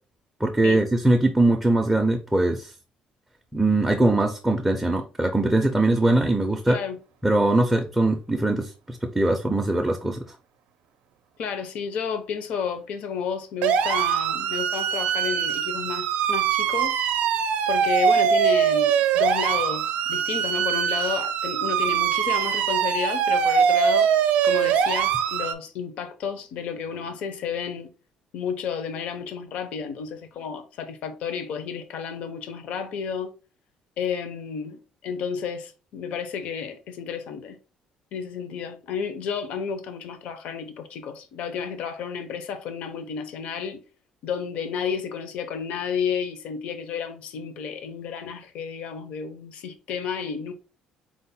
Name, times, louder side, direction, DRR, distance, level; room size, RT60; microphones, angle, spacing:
voice 1, 0.4-2.7 3.5-6.8 7.2-10.2, right 2 dB, 5° right, 0.4 m, -21 dB
voice 2, 6.7-7.0 11.4-17.0 17.7-24.1 24.4-27.9 28.3-33.3 34.0-37.6 38.1-43.8 44.2-50.5, left 6 dB, 60° left, 0.6 m, -31 dB
sound 1, 13.6-25.5, right 8 dB, 85° right, 0.4 m, -22 dB
4.5 x 2.1 x 4.0 m
cardioid pair, 180°, 2 cm